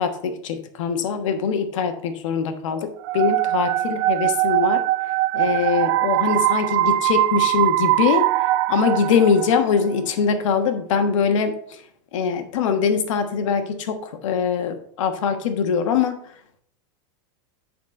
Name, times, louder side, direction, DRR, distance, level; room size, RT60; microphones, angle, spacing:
voice 1, 0.0-4.8 5.3-8.3 8.7-11.8 12.1-16.1, left 6 dB, 80° left, 6 dB, 1.2 m, -22 dB
sound 1, 3.0-9.9, right 16 dB, 50° right, 0.4 m, -21 dB
10.0 x 4.3 x 4.3 m, 0.64 s
supercardioid pair, 160°, 16 cm